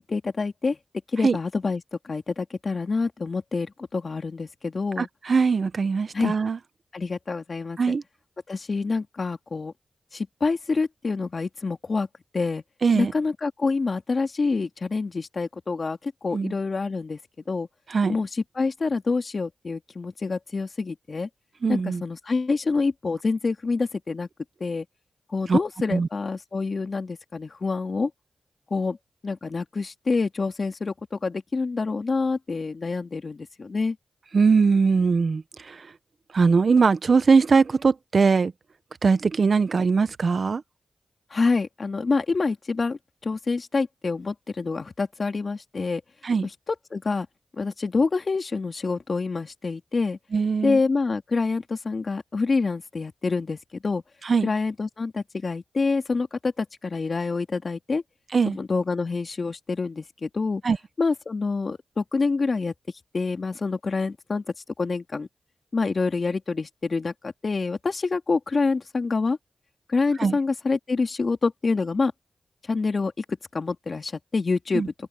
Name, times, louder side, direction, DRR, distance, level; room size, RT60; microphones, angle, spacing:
voice 1, 0.1-0.8 1.1-5.1 6.1-6.4 6.9-7.9 8.5-9.7 10.1-12.1 12.3-12.6 12.9-17.2 17.5-17.7 18.1-18.3 18.6-21.3 21.7-24.3 24.6-24.8 25.3-28.1 28.7-29.0 29.2-34.0 41.3-46.0 46.9-47.3 47.6-50.2 50.6-53.6 53.8-54.0 54.4-58.0 58.5-60.6 61.0-62.7 63.1-64.4 64.8-65.3 65.7-69.4 69.9-72.1 72.7-73.2 73.5-74.9, left 4 dB, 55° left, 2.6 m, -27 dB
voice 2, 5.0-6.6 7.8-8.0 12.8-13.1 16.3-16.5 17.9-18.2 21.6-22.0 25.5-25.6 25.9-26.1 34.3-35.8 36.3-38.5 39.0-40.6 46.2-46.5 50.3-50.8 54.2-54.5 58.3-58.6 60.6-60.8 70.2-70.4 74.7-74.9, right 5 dB, 60° right, 1.1 m, -21 dB
cardioid pair, 45°, 0 cm